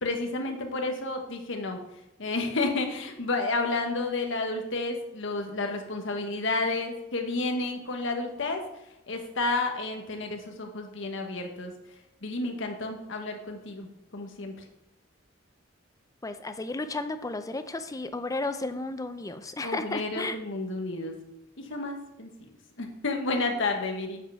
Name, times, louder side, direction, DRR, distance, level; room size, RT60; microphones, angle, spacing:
voice 1, 0.0-1.8 2.2-8.6 9.1-11.7 12.2-14.5 19.6-21.2 21.6-24.2, left 3 dB, 70° left, 4 dB, 1.2 m, -31 dB
voice 2, 16.2-20.4, left 2 dB, 15° left, 10 dB, 0.5 m, -33 dB
7.7 x 5.4 x 5.7 m, 0.88 s
head